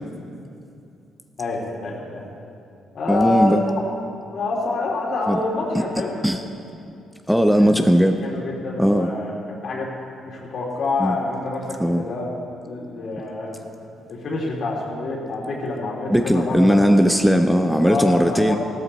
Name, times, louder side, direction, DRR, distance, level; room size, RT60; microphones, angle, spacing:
voice 1, 1.4-2.2 2.9-3.6 4.3-6.1 7.5-7.8 8.2-9.9 10.2-12.3 12.7-13.6 14.1-16.8 17.8-18.6, left 3 dB, 60° left, -2 dB, 3.0 m, -27 dB
voice 2, 3.1-3.6 5.3-5.4 5.7-5.8 6.2-6.4 7.3-8.2 8.8-9.1 11.0-11.2 11.8-12.0 16.1-18.6, equal, ahead, 6 dB, 0.6 m, -17 dB
14.5 x 13.0 x 4.2 m, 2.6 s
cardioid pair, 90°, 0 cm